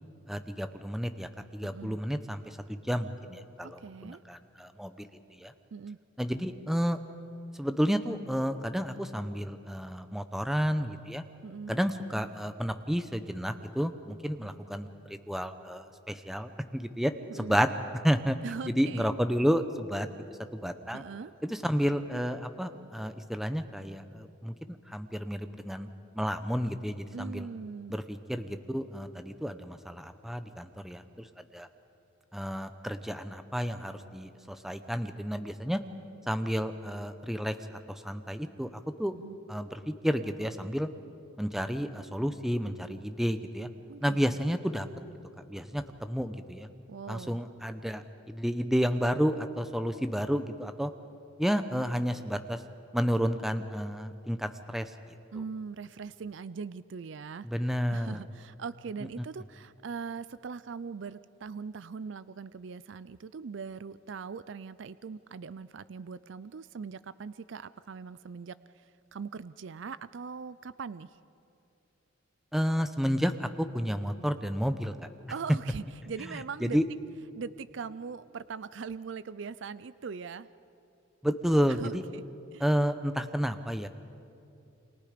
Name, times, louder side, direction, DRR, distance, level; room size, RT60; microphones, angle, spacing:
voice 1, 0.3-5.1 5.4-5.5 6.2-7.0 7.6-11.2 11.7-17.7 18.0-18.4 18.7-20.1 20.5-21.0 21.4-25.9 26.1-27.5 27.9-31.7 32.3-35.8 36.3-37.6 37.9-38.7 39.0-39.1 39.5-40.9 41.4-43.7 44.0-44.9 45.5-46.7 47.1-50.9 51.4-52.6 52.9-54.9 57.4-58.2 72.5-74.9 76.6-76.8 81.2-82.0 82.6-83.9, equal, ahead, 9 dB, 0.8 m, -31 dB
voice 2, 1.6-2.0 3.6-4.2 5.7-6.0 11.4-11.8 17.3-17.6 18.4-19.1 20.9-21.3 27.1-28.0 39.1-39.4 43.9-44.4 46.9-47.4 55.3-57.5 57.9-71.2 75.3-76.8 77.4-80.5 81.7-82.2 82.5-82.7, right 5 dB, 65° right, 16 dB, 0.4 m, -41 dB
29.0 x 25.5 x 5.1 m, 2.6 s
head